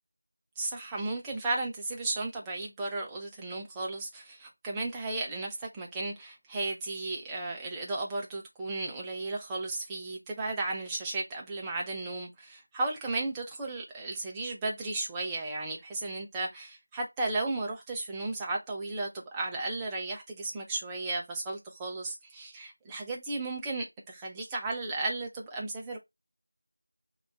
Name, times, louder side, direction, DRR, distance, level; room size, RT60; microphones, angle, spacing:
voice 1, 0.6-26.0, right 2 dB, 5° right, 0.3 m, -34 dB
4.9 x 2.3 x 3.2 m
figure-of-eight pair, 175°, 0 cm